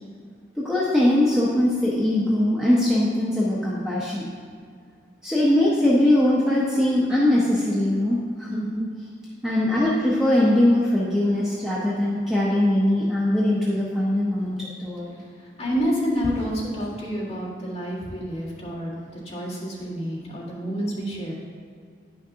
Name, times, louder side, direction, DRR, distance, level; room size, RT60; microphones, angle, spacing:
voice 1, 0.6-4.3 5.2-8.5 9.4-15.1, left 1 dB, ahead, -7 dB, 0.7 m, -21 dB
voice 2, 8.5-8.8 15.6-21.3, equal, 35° left, -8 dB, 1.8 m, -28 dB
9.6 x 6.0 x 2.8 m, 2.1 s
head